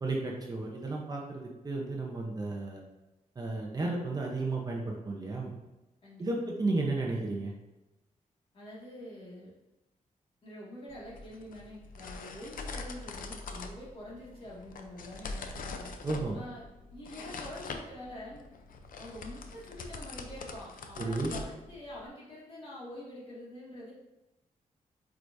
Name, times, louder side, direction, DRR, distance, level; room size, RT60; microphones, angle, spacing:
voice 1, 0.0-2.8 3.4-5.5 6.2-7.5 16.0-16.4 21.0-21.3, right 2 dB, 30° right, -1 dB, 0.9 m, -33 dB
voice 2, 8.5-9.5 10.4-15.9 16.3-16.6 16.9-18.5 19.0-23.9, left 1 dB, 40° left, -6 dB, 2.2 m, -46 dB
sound 1, 10.9-22.1, left 4 dB, 90° left, 0.7 m, -43 dB
8.2 x 4.9 x 2.7 m, 1.0 s
wide cardioid pair, 175°, 14 cm